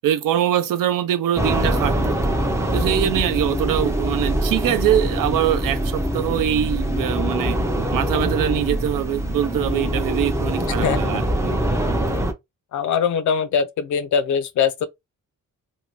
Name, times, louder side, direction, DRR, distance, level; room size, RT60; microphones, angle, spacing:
voice 1, 0.0-2.2 2.7-7.6 7.9-11.6, right 11 dB, 85° right, 0.6 m, -23 dB
sound 1, 1.3-12.3, right 1 dB, 10° right, 0.4 m, -23 dB
voice 2, 10.8-11.2 12.7-14.9, left 7 dB, 60° left, 0.5 m, -22 dB
2.6 x 2.2 x 3.0 m
wide cardioid pair, 160°, 32 cm